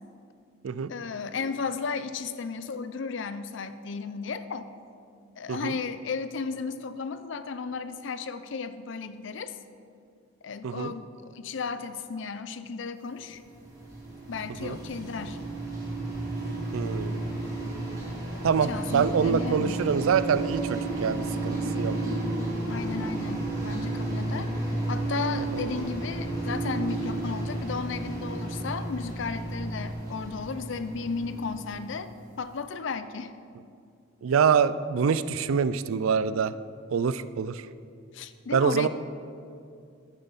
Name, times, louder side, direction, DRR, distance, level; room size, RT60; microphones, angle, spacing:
voice 1, 0.9-4.7 5.4-9.5 10.4-13.4 14.3-15.4 18.7-19.8 22.7-24.5 24.9-32.1 32.4-33.3 38.1-38.9, left 5 dB, 60° left, 12 dB, 0.5 m, -34 dB
sound 1, 13.3-32.3, right 2 dB, 15° right, 2.4 m, -32 dB
voice 2, 16.7-17.2 18.4-22.0 34.2-36.5 36.9-37.7 38.5-38.9, right 6 dB, 80° right, 15 dB, 0.4 m, -25 dB
10.5 x 9.1 x 4.1 m, 2.4 s
head